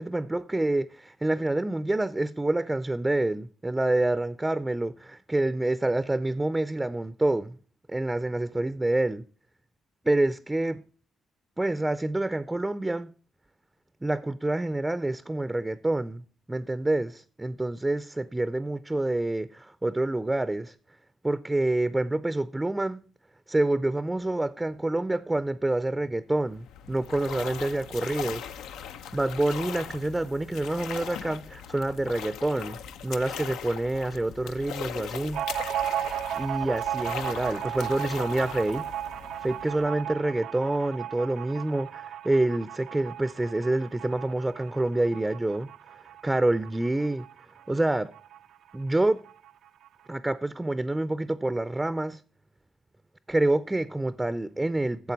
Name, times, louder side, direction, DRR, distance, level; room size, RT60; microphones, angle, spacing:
voice 1, 0.0-7.6 7.9-9.2 10.0-10.8 11.6-13.1 14.0-20.7 21.2-23.0 23.5-28.5 29.1-35.4 36.3-38.9 39.4-45.7 46.2-47.3 47.7-48.1 48.7-49.2 50.1-52.2 53.3-55.1, right 2 dB, 15° right, 0.4 m, -27 dB
sound 1, 26.4-40.1, left 8 dB, 90° left, 0.6 m, -40 dB
sound 2, 35.3-48.5 48.7-48.8 49.1-49.9, right 11 dB, 75° right, 0.4 m, -35 dB
12.0 x 7.4 x 3.9 m
cardioid pair, 90°, 0 cm